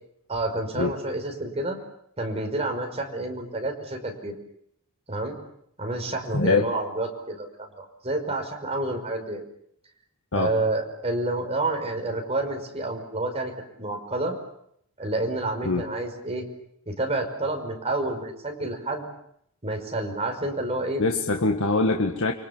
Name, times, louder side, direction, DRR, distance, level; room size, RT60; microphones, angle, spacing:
voice 1, 0.3-1.8 2.2-4.3 5.1-5.4 5.8-9.4 10.3-13.5 13.8-14.4 15.0-16.5 16.9-19.1 19.6-21.0, right 2 dB, 30° right, 3 dB, 5.4 m, -29 dB
voice 2, 6.3-6.7 10.3-10.5 15.6-15.9 21.0-22.3, left 3 dB, 65° left, 3 dB, 1.7 m, -23 dB
29.5 x 24.0 x 7.3 m, 0.72 s
head